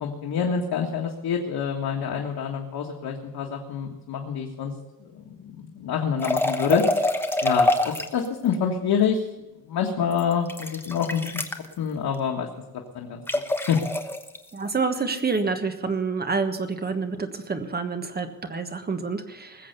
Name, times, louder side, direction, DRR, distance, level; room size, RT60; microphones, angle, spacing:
voice 1, 0.0-4.7 5.0-7.2 7.4-9.2 9.7-11.5 11.8-12.5 13.0-13.2 13.7-13.8, left 7 dB, 90° left, 1 dB, 1.8 m, -27 dB
sound 1, 6.2-8.3 10.1-11.7 13.3-14.4, left 1 dB, 5° left, 1.1 m, -25 dB
voice 2, 14.5-19.7, right 4 dB, 25° right, 8 dB, 1.4 m, -28 dB
20.0 x 7.8 x 6.8 m, 1.1 s
wide cardioid pair, 160°, 36 cm